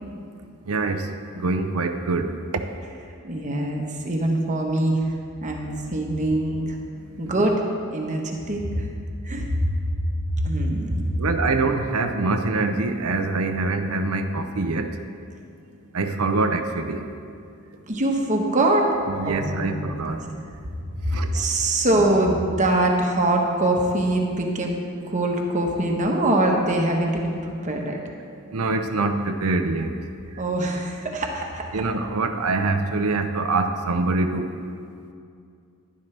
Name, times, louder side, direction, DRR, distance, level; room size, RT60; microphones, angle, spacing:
voice 1, 0.7-1.0 1.4-2.3 11.2-14.9 15.9-17.0 19.1-20.2 21.1-21.3 28.5-29.9 31.7-34.5, right 3 dB, 80° right, 6 dB, 0.7 m, -24 dB
voice 2, 3.2-5.0 5.4-6.7 7.2-7.6 7.9-8.9 9.2-9.5 10.4-11.0 17.9-18.9 19.2-20.2 21.0-24.8 25.1-28.0 30.4-31.8, right 1 dB, 35° right, 1 dB, 1.1 m, -23 dB
11.5 x 11.0 x 3.4 m, 2.4 s
head